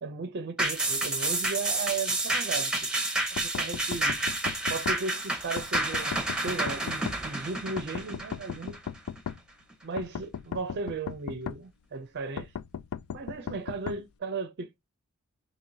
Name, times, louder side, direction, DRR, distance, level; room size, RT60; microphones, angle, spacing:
voice 1, 0.0-2.9 3.4-4.2 4.7-8.8 9.8-12.5 13.1-14.9, right 4 dB, 50° right, 0.5 m, -36 dB
sound 1, 0.6-9.3 9.7-9.8, right 2 dB, 5° right, 0.8 m, -30 dB
sound 2, 3.4-5.0 5.6-7.2 7.8-9.4 10.0-11.6 12.4-14.0, left 8 dB, 70° left, 0.3 m, -36 dB
4.5 x 2.8 x 2.7 m
head